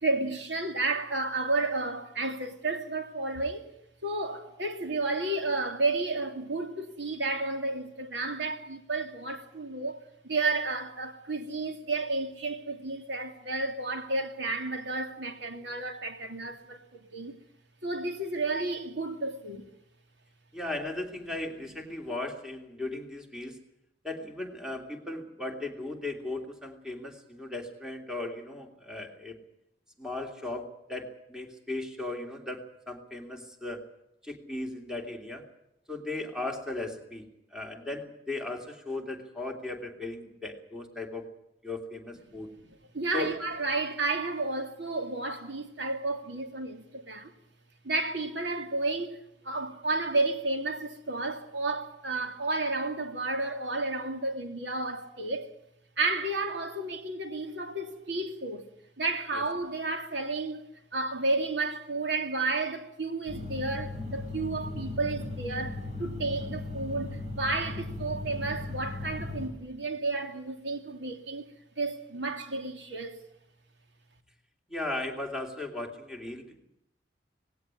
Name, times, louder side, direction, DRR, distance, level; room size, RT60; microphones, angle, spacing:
voice 1, 0.0-3.7 4.0-17.4 17.8-19.7 42.3-47.3 47.8-49.2 49.4-55.5 56.0-58.7 59.0-71.4 71.8-73.2, right 3 dB, 75° right, 2.7 m, -32 dB
voice 2, 20.5-23.6 24.0-29.4 30.0-32.6 32.9-33.8 34.2-35.4 35.9-37.2 37.5-41.2 41.6-42.5 43.1-43.3 59.3-59.4 74.7-76.6, left 2 dB, 5° right, 2.9 m, -37 dB
sound 1, 63.3-69.5, left 2 dB, 40° right, 5.2 m, -37 dB
19.0 x 17.0 x 9.8 m
head